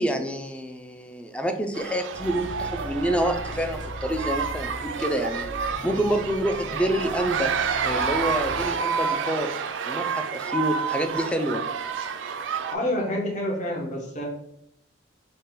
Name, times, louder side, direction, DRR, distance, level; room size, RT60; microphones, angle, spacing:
voice 1, 0.0-7.5 7.8-9.5 9.8-11.6, right 1 dB, 5° left, 6 dB, 0.3 m, -27 dB
sound 1, 1.7-12.8, right 6 dB, 90° right, 0.3 m, -29 dB
sound 2, 2.1-8.7, left 1 dB, 80° left, 0.5 m, -39 dB
voice 2, 12.7-14.2, left 1 dB, 40° left, -1 dB, 0.8 m, -28 dB
3.9 x 2.1 x 3.8 m, 0.76 s
head